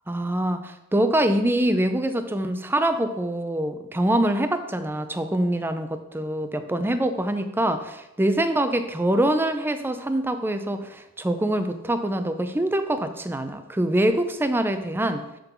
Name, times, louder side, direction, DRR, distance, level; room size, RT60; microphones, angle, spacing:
voice 1, 0.1-15.2, right 1 dB, 10° right, 9 dB, 0.4 m, -24 dB
6.7 x 3.8 x 5.9 m, 0.93 s
head